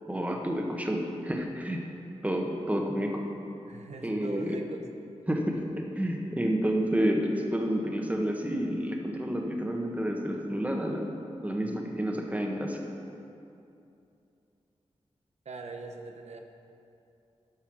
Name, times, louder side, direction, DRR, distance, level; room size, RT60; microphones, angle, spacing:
voice 1, 0.1-1.8 2.2-3.3 4.0-4.6 5.3-5.6 6.0-11.1 11.4-12.8, equal, 10° right, 1 dB, 1.4 m, -29 dB
voice 2, 3.6-4.9 15.4-16.4, right 3 dB, 70° right, 3 dB, 1.0 m, -41 dB
11.5 x 5.6 x 6.3 m, 2.7 s
cardioid pair, 70°, 12 cm